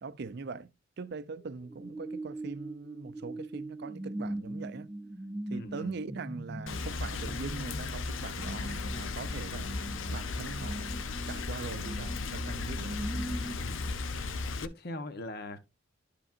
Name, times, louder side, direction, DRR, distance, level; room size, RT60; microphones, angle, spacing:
voice 1, 0.0-4.9 5.5-9.8 10.1-10.9 11.3-12.9, right 4 dB, 55° right, 0.5 m, -41 dB
sound 1, 1.4-13.6, right 1 dB, 5° right, 0.6 m, -41 dB
voice 2, 5.5-5.9 13.6-14.0 14.6-15.6, left 1 dB, 55° left, 1.0 m, -41 dB
Rain, 6.7-14.7, left 3 dB, 75° left, 0.7 m, -36 dB
12.0 x 5.0 x 2.6 m
head